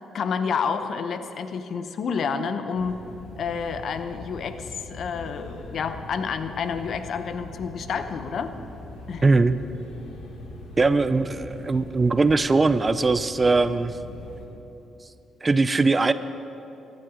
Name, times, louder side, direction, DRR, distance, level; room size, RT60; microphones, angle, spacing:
voice 1, 0.1-3.0 3.4-8.5 9.1-9.2, left 6 dB, 60° left, 9 dB, 0.8 m, -29 dB
sound 1, 2.7-14.5, left 2 dB, 80° left, 1.8 m, -41 dB
voice 2, 9.2-9.6 10.8-14.0 15.4-16.1, right 3 dB, 25° right, 13 dB, 0.4 m, -20 dB
15.0 x 12.0 x 5.0 m, 3.0 s
cardioid pair, 90°, 0 cm